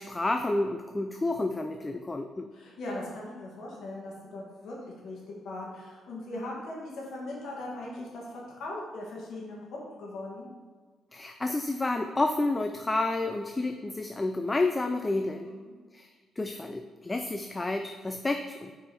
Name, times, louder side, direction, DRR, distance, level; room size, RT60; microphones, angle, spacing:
voice 1, 0.0-2.5 11.1-15.5 15.9-16.1 16.4-18.7, left 2 dB, 20° left, 6 dB, 0.3 m, -30 dB
voice 2, 2.5-4.8 5.0-5.2 5.4-8.2 8.6-10.5 15.5-15.7, left 2 dB, 70° left, -4 dB, 1.8 m, -39 dB
5.1 x 4.5 x 4.4 m, 1.5 s
cardioid pair, 90°, 0 cm